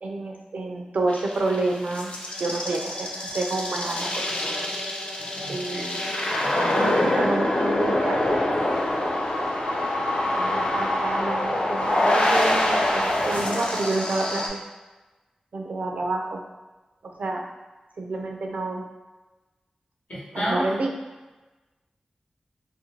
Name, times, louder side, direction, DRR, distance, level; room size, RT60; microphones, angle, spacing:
voice 1, 0.0-4.3 5.5-6.0 6.7-8.2 10.3-14.6 15.5-16.4 17.0-17.4 18.0-18.9 20.3-20.9, right 2 dB, 80° right, 1 dB, 0.4 m, -29 dB
sound 1, 1.1-14.5, left 1 dB, 55° left, 0.4 m, -25 dB
voice 2, 5.2-5.9 6.3-7.2 20.1-20.7, equal, 75° left, -8 dB, 0.9 m, -32 dB
2.4 x 2.2 x 2.9 m, 1.2 s
cardioid pair, 50°, 2 cm